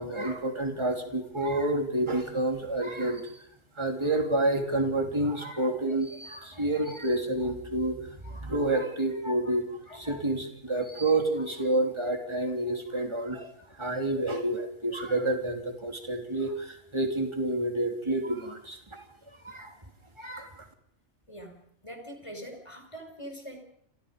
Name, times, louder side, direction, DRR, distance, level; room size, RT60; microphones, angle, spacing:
voice 1, 0.0-3.4 3.8-13.5 13.8-19.0 19.4-19.8 20.2-20.5, right 2 dB, 20° right, 4 dB, 3.2 m, -29 dB
voice 2, 21.3-23.6, equal, 20° left, 4 dB, 4.9 m, -43 dB
28.5 x 25.5 x 5.3 m, 0.71 s
omnidirectional pair, 1.4 m